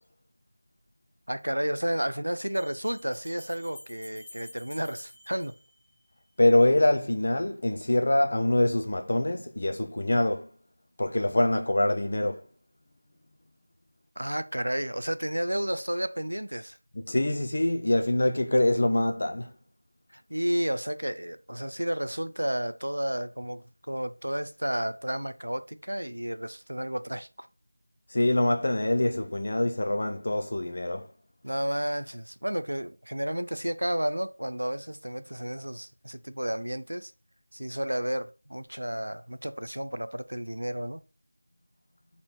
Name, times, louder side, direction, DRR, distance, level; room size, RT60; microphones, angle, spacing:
Bell, 0.8-0.9 2.4-6.3, left 1 dB, 5° left, 1.4 m, -51 dB
voice 1, 1.3-5.5 14.2-16.8 20.1-27.5 31.4-37.1 37.5-41.0, equal, 70° right, 0.7 m, -32 dB
voice 2, 6.4-10.5 11.0-12.5 16.9-19.5 28.1-31.1, left 1 dB, 45° left, 1.1 m, -24 dB
6.8 x 4.4 x 6.0 m
figure-of-eight pair, 170°, 0 cm